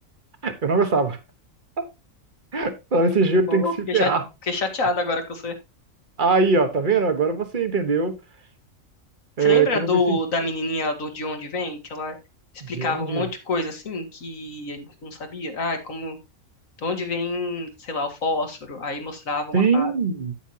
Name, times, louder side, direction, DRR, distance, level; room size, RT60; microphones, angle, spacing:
voice 1, 0.4-1.2 2.5-4.2 6.2-8.1 9.4-10.2 12.7-13.2 19.5-20.3, right 4 dB, 40° right, 1.4 m, -21 dB
voice 2, 3.5-4.1 4.5-5.5 9.4-12.2 12.7-16.2 16.8-19.9, left 2 dB, 75° left, 2.2 m, -27 dB
9.1 x 8.4 x 2.8 m
omnidirectional pair, 1.4 m